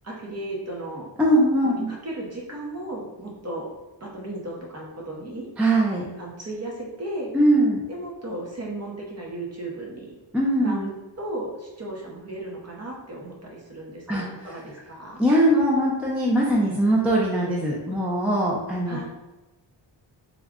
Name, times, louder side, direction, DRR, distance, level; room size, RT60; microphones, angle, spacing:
voice 1, 0.0-1.1 1.6-3.7 4.0-5.5 6.2-7.3 7.9-10.2 10.6-10.9 11.2-15.2 18.9-19.0, right 1 dB, 35° right, -3 dB, 0.8 m, -35 dB
voice 2, 1.2-1.9 5.6-6.1 7.3-7.8 10.3-10.9 14.1-14.2 15.2-19.0, right 1 dB, 5° right, -3 dB, 0.4 m, -21 dB
3.6 x 2.1 x 3.5 m, 1.1 s
wide cardioid pair, 145°, 47 cm